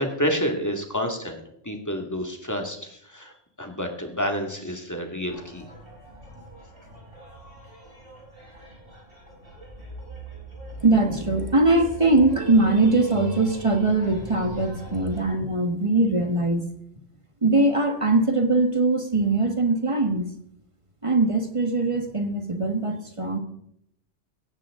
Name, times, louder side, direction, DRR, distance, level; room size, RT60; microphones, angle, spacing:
voice 1, 0.0-5.6, equal, 15° left, 3 dB, 2.2 m, -29 dB
sound 1, 5.2-15.2, right 1 dB, 45° right, 5.6 m, -40 dB
voice 2, 10.8-16.7 17.4-20.3 21.0-23.4, right 2 dB, 25° right, 6 dB, 1.6 m, -21 dB
17.0 x 15.0 x 3.8 m, 0.74 s
omnidirectional pair, 1.3 m